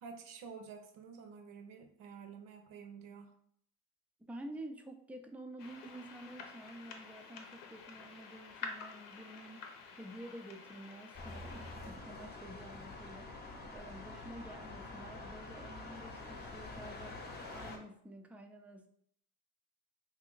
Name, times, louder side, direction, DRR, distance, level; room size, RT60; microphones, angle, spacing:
voice 1, 0.0-3.4, right 6 dB, 75° right, 5 dB, 0.8 m, -50 dB
voice 2, 4.3-17.2 17.5-18.9, right 1 dB, 5° right, 5 dB, 0.3 m, -50 dB
sound 1, 5.6-11.8, left 5 dB, 70° left, 0.7 m, -49 dB
sound 2, 11.1-17.8, left 2 dB, 30° left, 0.7 m, -47 dB
2.9 x 2.4 x 3.8 m, 0.64 s
cardioid pair, 100°, 34 cm